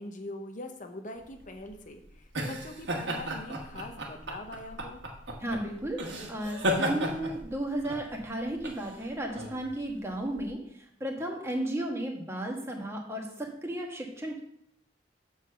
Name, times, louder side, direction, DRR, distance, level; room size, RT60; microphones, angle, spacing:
voice 1, 0.0-5.0, left 1 dB, 45° left, 5 dB, 0.9 m, -43 dB
sound 1, 1.3-10.5, equal, 80° right, 1.4 m, -35 dB
voice 2, 5.4-14.4, right 1 dB, 15° right, 0 dB, 1.4 m, -34 dB
7.1 x 4.0 x 6.7 m, 0.71 s
head